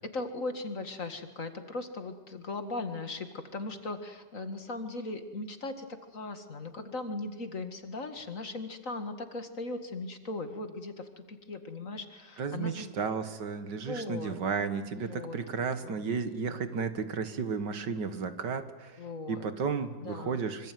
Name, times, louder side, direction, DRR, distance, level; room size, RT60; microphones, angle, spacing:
voice 1, 0.0-12.9 13.7-14.4 15.1-16.0 19.0-19.5 20.0-20.4, left 2 dB, 45° left, 8 dB, 2.3 m, -38 dB
voice 2, 12.4-20.7, right 5 dB, 70° right, 10 dB, 2.2 m, -33 dB
25.5 x 25.0 x 9.4 m, 1.2 s
omnidirectional pair, 1.9 m